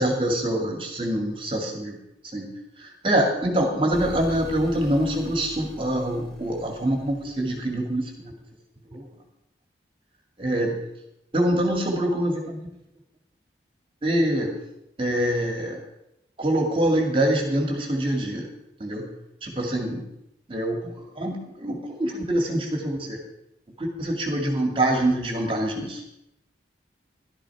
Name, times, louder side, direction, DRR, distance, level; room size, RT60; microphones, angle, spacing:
voice 1, 0.0-2.0 2.3-2.5 2.8-8.3 8.9-9.0 10.4-10.8 11.3-12.7 14.0-14.5 15.0-15.8 16.4-18.5 18.8-19.1 19.4-20.0 20.5-23.2 23.8-26.0, right 1 dB, 30° right, 2 dB, 2.1 m, -25 dB
sound 1, 3.9-8.2, equal, ahead, 3.7 m, -43 dB
13.5 x 12.0 x 4.8 m, 0.82 s
head